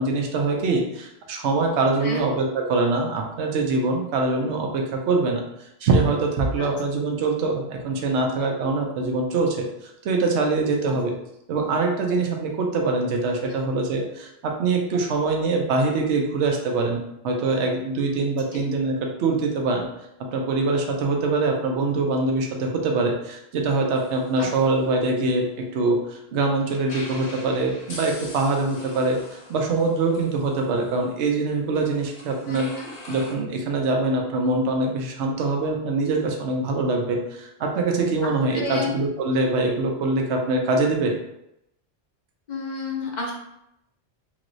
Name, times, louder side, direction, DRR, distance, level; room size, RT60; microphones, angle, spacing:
voice 1, 0.0-5.4 5.8-11.1 11.5-17.0 17.2-19.9 20.2-32.7 33.1-41.1, right 3 dB, 75° right, 2 dB, 0.9 m, -24 dB
sound 1, 24.0-26.0 26.8-33.3, left 2 dB, 70° left, 1.1 m, -43 dB
voice 2, 32.5-32.9 38.2-39.0 42.5-43.3, left 3 dB, 45° left, -2 dB, 0.7 m, -31 dB
3.0 x 3.0 x 2.5 m, 0.82 s
omnidirectional pair, 1.2 m